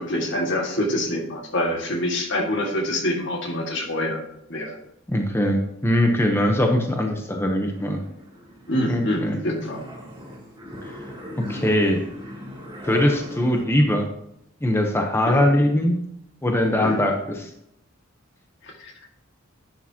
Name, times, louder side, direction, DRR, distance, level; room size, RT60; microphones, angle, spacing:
voice 1, 0.0-4.2 4.5-4.8 8.7-9.8 15.3-15.5 16.8-17.0 18.8-18.9, left 1 dB, 60° left, 2 dB, 1.9 m, -26 dB
voice 2, 5.1-8.0 8.9-9.4 10.8-11.1 11.5-12.0 12.8-14.1 14.6-16.0 16.4-17.5, left 1 dB, 10° left, 2 dB, 0.8 m, -21 dB
sound 1, 7.6-13.6, equal, 20° right, 2.5 m, -39 dB
11.5 x 8.5 x 2.9 m, 0.80 s
head